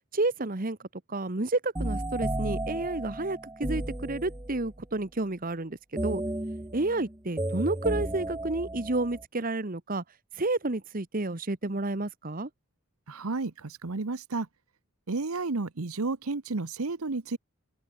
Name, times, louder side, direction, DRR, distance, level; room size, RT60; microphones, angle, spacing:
voice 1, 0.1-0.8 1.1-5.8 6.0-6.2 6.7-10.0 10.4-12.5, right 2 dB, 40° right, 1.3 m, -30 dB
sound 1, 1.8-4.7 6.0-9.3, right 1 dB, 15° right, 1.0 m, -33 dB
voice 2, 13.1-14.5 15.1-17.4, right 3 dB, 80° right, 1.1 m, -32 dB
head